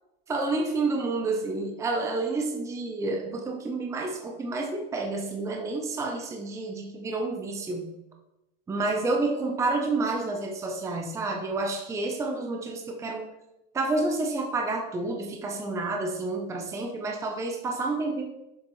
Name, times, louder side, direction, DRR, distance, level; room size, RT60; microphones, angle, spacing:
voice 1, 0.3-7.9 8.7-13.2 13.7-18.2, right 3 dB, 10° right, 2 dB, 0.6 m, -29 dB
7.1 x 6.8 x 3.1 m, 0.90 s
supercardioid pair, 155°, 29 cm